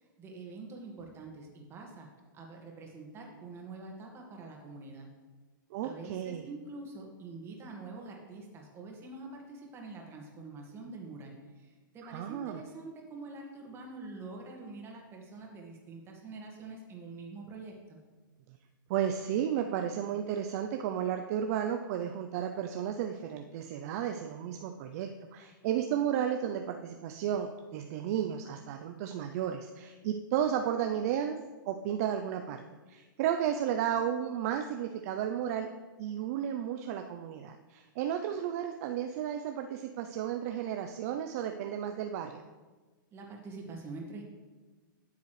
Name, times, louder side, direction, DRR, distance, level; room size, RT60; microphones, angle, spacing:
voice 1, 0.0-5.1 5.8-18.0 43.1-44.2, right 3 dB, 20° right, 1 dB, 1.9 m, -46 dB
voice 2, 5.7-6.4 12.0-12.6 18.9-31.4 31.7-32.6 32.9-35.7 36.0-42.4, right 9 dB, 45° right, 5 dB, 0.6 m, -33 dB
12.0 x 7.1 x 3.3 m, 1.3 s
hypercardioid pair, 135°, 11 cm